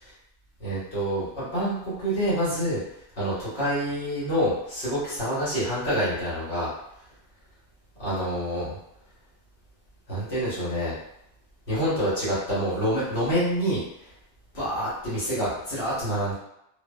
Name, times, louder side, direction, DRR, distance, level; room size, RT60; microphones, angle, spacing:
voice 1, 0.6-2.8 3.2-6.7 8.0-8.8 10.1-10.9 11.7-13.8 14.5-16.3, equal, 70° left, -10 dB, 1.4 m, -27 dB
2.7 x 2.0 x 2.2 m, 0.80 s
omnidirectional pair, 1.1 m